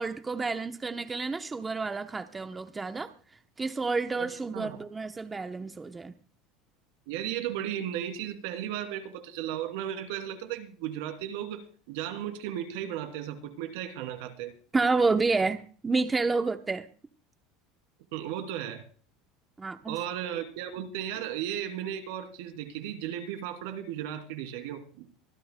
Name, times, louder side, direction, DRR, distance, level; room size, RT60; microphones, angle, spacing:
voice 1, 0.0-3.1 3.6-6.1 14.7-16.9 19.6-20.0, right 3 dB, 15° right, 8 dB, 0.8 m, -29 dB
voice 2, 4.1-4.8 7.1-14.5 18.1-18.8 19.9-25.1, right 10 dB, 80° right, 7 dB, 2.8 m, -35 dB
25.0 x 12.0 x 2.2 m, 0.41 s
supercardioid pair, 130°, 0 cm